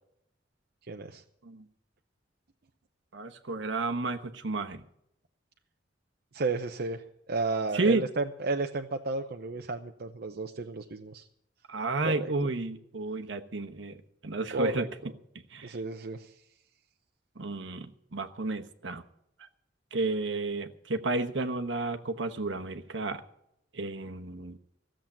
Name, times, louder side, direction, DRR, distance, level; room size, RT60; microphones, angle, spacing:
voice 1, 0.9-1.2 6.3-11.3 12.0-12.3 14.5-14.9 15.6-16.3, right 3 dB, 55° right, 5 dB, 0.7 m, -33 dB
voice 2, 3.1-4.8 7.7-8.0 11.7-14.9 15.5-15.8 17.4-19.0 19.9-23.2 23.7-24.6, right 3 dB, 75° right, 6 dB, 1.2 m, -32 dB
16.0 x 7.6 x 8.6 m, 0.77 s
head